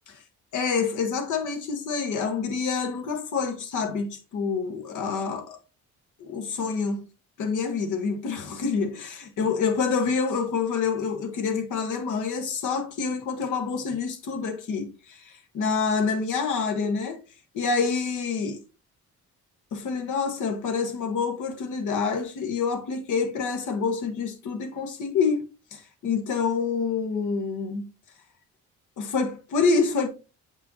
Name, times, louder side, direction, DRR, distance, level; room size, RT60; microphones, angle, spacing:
voice 1, 0.5-5.6 6.2-7.1 7.4-17.2 17.5-18.6 19.7-27.8 29.0-30.1, left 5 dB, 80° left, 1.4 m, -27 dB
7.5 x 5.4 x 2.8 m
cardioid pair, 90°, 30 cm